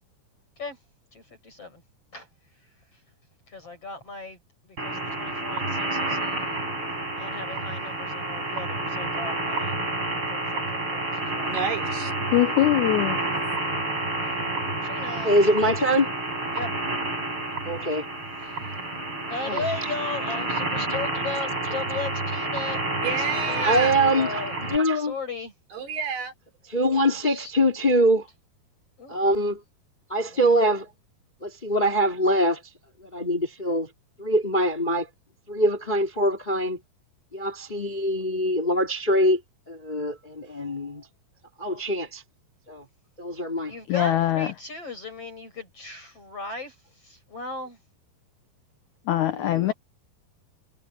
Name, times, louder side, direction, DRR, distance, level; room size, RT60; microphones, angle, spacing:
voice 1, 1.1-1.8 2.1-2.3 3.5-4.4 4.6-6.6 7.2-9.8 10.3-11.5 14.8-15.4 16.5-16.7 18.4-18.6 19.3-24.6 24.9-25.5 26.9-27.5 27.9-28.1 29.0-29.3 30.3-30.4 43.7-47.8 49.6-49.7, left 3 dB, 35° left, 8.3 m, -37 dB
sound 1, 4.8-24.8, right 2 dB, 30° right, 7.1 m, -29 dB
voice 2, 11.5-12.1 23.0-24.0 25.7-26.3, right 6 dB, 85° right, 6.4 m, -29 dB
voice 3, 12.3-13.2 43.9-44.5 49.1-49.7, left 13 dB, 90° left, 1.7 m, -22 dB
voice 4, 15.2-16.1 17.6-18.0 19.4-19.6 23.6-24.4 24.7-25.1 26.7-28.3 29.1-29.6 30.1-30.9 31.4-32.6 33.0-33.9 34.2-35.1 35.5-36.8 37.3-39.4 39.7-41.0 41.6-42.2 42.7-42.8 43.2-43.7 49.3-49.7, equal, 15° left, 2.7 m, -23 dB
omnidirectional pair, 4.5 m